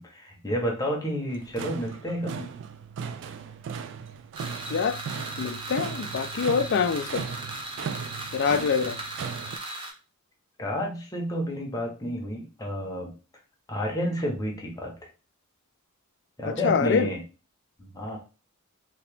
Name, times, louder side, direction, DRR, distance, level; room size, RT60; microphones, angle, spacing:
voice 1, 0.0-2.5 10.6-13.1 13.7-14.9 16.4-17.2 17.8-18.2, equal, 15° left, 0.8 m, -30 dB
sound 1, 1.3-9.6, right 6 dB, 60° right, 0.3 m, -37 dB
sound 2, 4.3-9.9, right 2 dB, 25° right, 0.7 m, -37 dB
voice 2, 4.7-7.3 8.3-9.0 16.4-17.1, left 6 dB, 55° left, 0.4 m, -25 dB
2.9 x 2.8 x 3.3 m
head